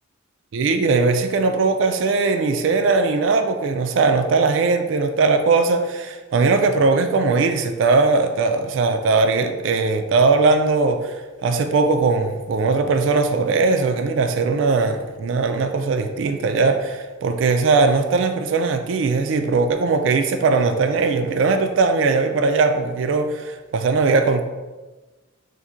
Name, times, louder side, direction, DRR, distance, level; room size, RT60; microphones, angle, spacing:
voice 1, 0.5-24.4, right 4 dB, 75° right, 7 dB, 0.3 m, -19 dB
4.2 x 2.6 x 2.4 m, 1.2 s
head